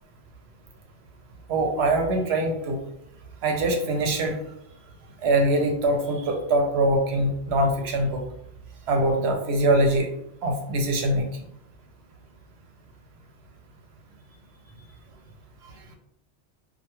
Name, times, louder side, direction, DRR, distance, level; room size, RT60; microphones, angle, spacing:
voice 1, 1.5-2.8 3.4-4.4 5.2-8.2 8.9-10.1 10.4-11.3, right 1 dB, 70° right, 2 dB, 0.8 m, -23 dB
2.2 x 2.2 x 2.8 m, 0.74 s
omnidirectional pair, 1.2 m